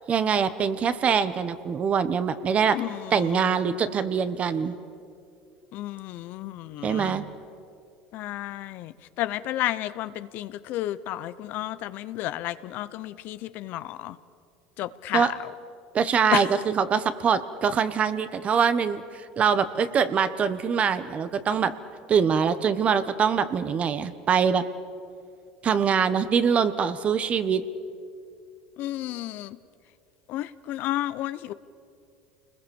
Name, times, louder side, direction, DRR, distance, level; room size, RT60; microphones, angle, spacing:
voice 1, 0.1-2.8 3.1-4.7 6.8-7.3 15.1-15.3 15.9-21.7 22.1-24.6 25.6-27.6, right 6 dB, 40° right, 13 dB, 1.3 m, -23 dB
voice 2, 2.7-3.8 5.7-7.2 8.1-14.2 14.8-15.4 16.3-16.5 28.8-29.6 30.3-31.5, left 14 dB, 60° left, 15 dB, 0.8 m, -32 dB
29.0 x 20.5 x 7.2 m, 2.4 s
supercardioid pair, 95°, 4 cm